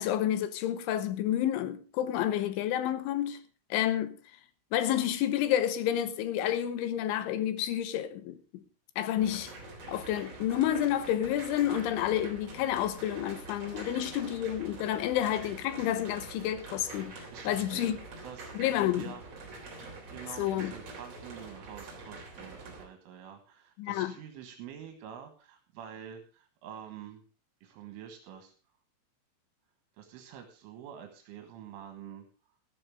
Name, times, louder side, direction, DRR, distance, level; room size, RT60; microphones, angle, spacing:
voice 1, 0.0-3.4 3.7-4.2 4.7-8.6 9.0-9.5 9.9-18.0 18.5-19.1 20.4-20.7 23.8-24.1, left 11 dB, 80° left, 3.3 m, -30 dB
sound 1, 9.1-22.8, right 3 dB, 35° right, 4.0 m, -46 dB
voice 2, 13.8-14.1 17.3-18.0 18.2-18.5 19.0-19.2 20.1-27.2 27.6-28.5 30.0-32.3, right 9 dB, 85° right, 4.0 m, -47 dB
13.5 x 13.5 x 3.6 m
omnidirectional pair, 5.7 m